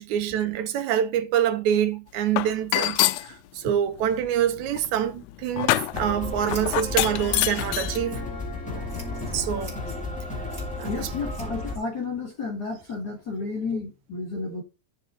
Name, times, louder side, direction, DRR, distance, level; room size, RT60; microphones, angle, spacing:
voice 1, 0.0-8.2 8.7-8.9 9.3-9.8 10.8-11.1 14.3-14.4, right 9 dB, 80° right, 2.1 m, -26 dB
sound 1, 2.4-3.3 4.0-8.0, left 16 dB, 80° left, 1.9 m, -26 dB
Scissors, 5.6-13.7, right 2 dB, 20° right, 2.4 m, -51 dB
sound 2, 5.9-11.8, left 2 dB, 5° left, 1.6 m, -33 dB
voice 2, 10.9-14.6, left 4 dB, 45° left, 1.6 m, -32 dB
9.7 x 5.3 x 3.7 m
omnidirectional pair, 3.4 m